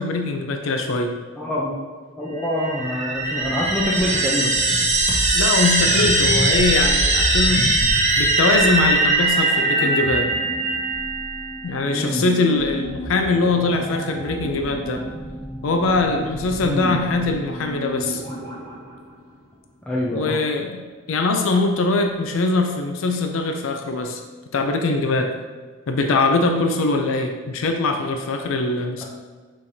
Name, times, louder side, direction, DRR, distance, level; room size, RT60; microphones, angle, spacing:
voice 1, 0.0-1.2 5.3-7.7 8.2-10.3 11.6-15.1 15.6-18.2 20.1-20.8 21.1-24.2 24.5-25.3 25.9-29.0, left 3 dB, 75° left, 4 dB, 0.4 m, -22 dB
voice 2, 1.4-1.8 2.2-4.6 11.9-12.3 16.6-17.0 19.8-20.4, left 1 dB, 5° left, -7 dB, 0.4 m, -25 dB
sound 1, 2.4-11.7, right 2 dB, 35° right, 0.6 m, -20 dB
sound 2, 8.1-20.1 20.3-20.4, right 1 dB, 30° left, 1.2 m, -35 dB
5.5 x 3.2 x 2.7 m, 1.5 s
head